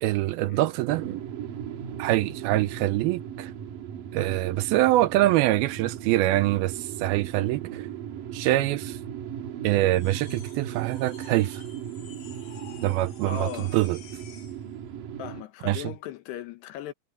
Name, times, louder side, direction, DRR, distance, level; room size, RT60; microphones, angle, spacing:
voice 1, 0.0-1.2 2.0-3.5 4.1-7.9 8.3-9.0 9.6-11.6 12.8-14.0 15.7-15.8, right 16 dB, 80° right, 2.4 m, -24 dB
sound 1, 0.9-15.4, right 9 dB, 65° right, 3.0 m, -37 dB
sound 2, 9.9-14.6, left 6 dB, 60° left, 5.2 m, -50 dB
voice 2, 13.3-13.8 15.2-16.9, left 11 dB, 85° left, 3.5 m, -37 dB
omnidirectional pair, 4.6 m